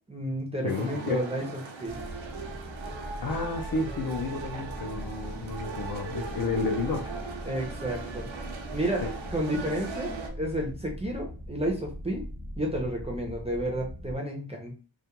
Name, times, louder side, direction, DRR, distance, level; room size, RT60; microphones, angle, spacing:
voice 1, 0.1-2.0 7.4-8.3 8.7-9.0 9.3-12.2 12.6-14.7, right 1 dB, 15° right, -1 dB, 0.4 m, -31 dB
voice 2, 0.6-1.3 3.2-7.1 9.0-9.1, left 3 dB, 50° left, 3 dB, 0.5 m, -31 dB
sound 1, 0.7-10.3, right 4 dB, 80° right, 0.6 m, -39 dB
sound 2, 1.9-14.2, equal, 30° left, 0.9 m, -41 dB
2.3 x 2.1 x 2.9 m, 0.36 s
wide cardioid pair, 170°, 46 cm